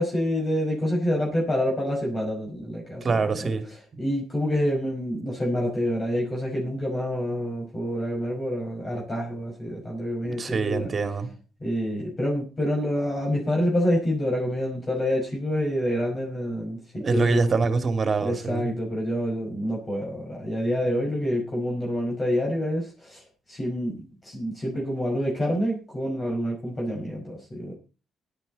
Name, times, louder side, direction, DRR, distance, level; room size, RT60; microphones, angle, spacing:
voice 1, 0.0-10.9 11.6-17.4 18.2-27.7, equal, 30° left, 5.3 m, -27 dB
voice 2, 3.0-3.6 10.2-11.3 17.0-18.7, right 4 dB, 40° right, 2.6 m, -25 dB
16.5 x 11.5 x 4.1 m
cardioid pair, 90°, 0 cm